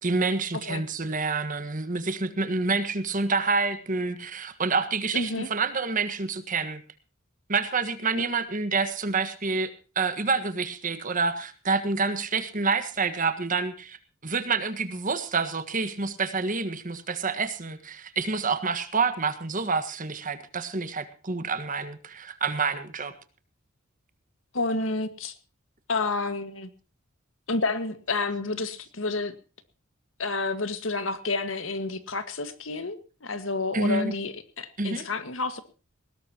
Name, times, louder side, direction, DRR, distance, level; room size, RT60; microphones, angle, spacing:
voice 1, 0.0-6.8 7.5-14.0 14.2-23.1 33.7-34.1 34.8-35.1, right 4 dB, 40° right, 10 dB, 1.6 m, -28 dB
voice 2, 5.1-5.5 24.5-25.3 25.9-26.7 27.5-29.3 30.2-35.6, left 3 dB, 75° left, 10 dB, 1.8 m, -30 dB
20.0 x 18.0 x 3.0 m, 0.36 s
head